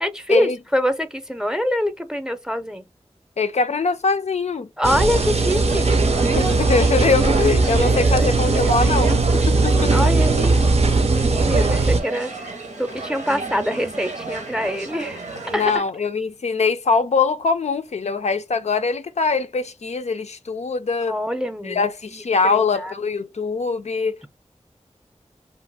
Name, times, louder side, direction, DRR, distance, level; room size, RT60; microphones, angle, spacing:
voice 1, 0.0-2.8 4.8-5.9 7.7-9.0 9.9-10.5 11.0-15.7 21.1-22.9, equal, 5° right, 0.6 m, -25 dB
voice 2, 3.4-4.7 6.4-10.1 11.5-11.7 15.5-21.1 21.6-24.2, left 4 dB, 70° left, 0.4 m, -22 dB
sound 1, 4.8-12.0, right 3 dB, 60° right, 0.5 m, -18 dB
sound 2, 5.0-15.8, right 3 dB, 90° right, 0.8 m, -30 dB
2.5 x 2.3 x 4.0 m
wide cardioid pair, 45°, 12 cm